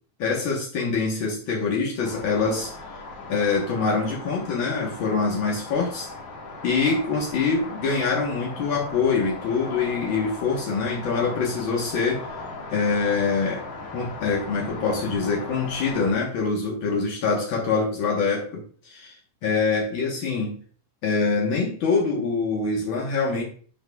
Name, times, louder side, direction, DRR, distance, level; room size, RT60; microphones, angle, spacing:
voice 1, 0.2-2.7 3.3-6.1 6.6-12.3 12.7-13.6 13.9-19.1 19.4-20.6 21.0-23.4, left 4 dB, 70° left, -2 dB, 1.1 m, -24 dB
sound 1, 2.0-16.1, left 3 dB, 50° left, 2.1 m, -38 dB
11.0 x 4.9 x 2.3 m, 0.43 s
omnidirectional pair, 4.2 m